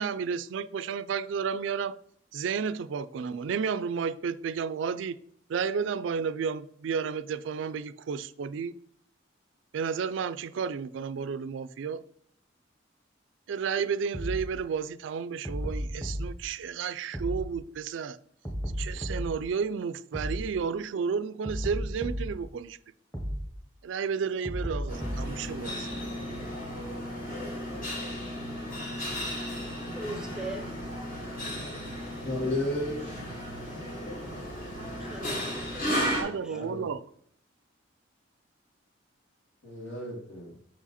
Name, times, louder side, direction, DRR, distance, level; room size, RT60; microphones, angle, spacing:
voice 1, 0.0-2.0 2.3-5.2 5.5-8.7 9.7-12.0 13.5-18.2 18.8-22.8 23.8-25.9 36.0-37.0, right 6 dB, 75° right, 0.3 m, -32 dB
sound 1, 14.1-14.5 15.4-16.3 17.1-17.5 18.4-19.4 20.1-20.5 21.4-22.4 23.1-23.5 24.4-25.4, equal, 10° left, 1.2 m, -33 dB
sound 2, 24.9-36.2, equal, 45° left, 1.6 m, -35 dB
voice 2, 30.0-30.8 35.0-35.9 36.1-36.6, right 1 dB, 5° right, 0.6 m, -40 dB
voice 3, 32.2-33.2 36.5-36.9 39.6-40.5, left 1 dB, 80° left, 2.6 m, -33 dB
5.8 x 4.9 x 4.1 m
head